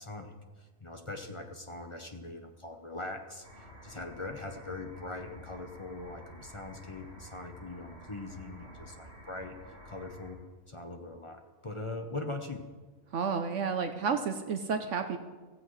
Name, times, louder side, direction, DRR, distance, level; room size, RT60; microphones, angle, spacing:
voice 1, 0.0-9.5 9.8-10.4 10.7-12.6, left 2 dB, 25° left, 4 dB, 0.8 m, -41 dB
sound 1, 3.4-10.3, equal, 45° right, 4.7 m, -51 dB
voice 2, 13.1-15.2, right 6 dB, 60° right, 7 dB, 1.0 m, -31 dB
16.0 x 15.0 x 3.2 m, 1.4 s
omnidirectional pair, 1.5 m